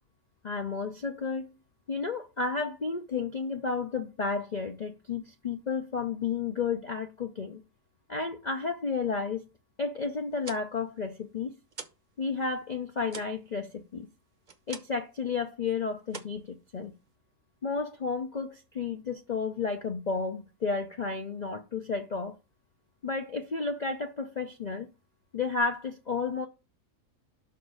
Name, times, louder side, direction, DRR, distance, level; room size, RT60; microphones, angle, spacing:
voice 1, 0.4-1.5 1.9-7.6 8.1-9.4 9.8-11.5 12.2-14.1 14.7-16.9 17.6-22.3 23.0-24.9 25.3-26.5, left 4 dB, 45° left, 0.5 m, -32 dB
sound 1, 10.2-12.1 12.4-15.1 15.4-15.7 16.1-17.2, right 5 dB, 35° right, 0.9 m, -46 dB
6.1 x 4.8 x 6.3 m
omnidirectional pair, 1.7 m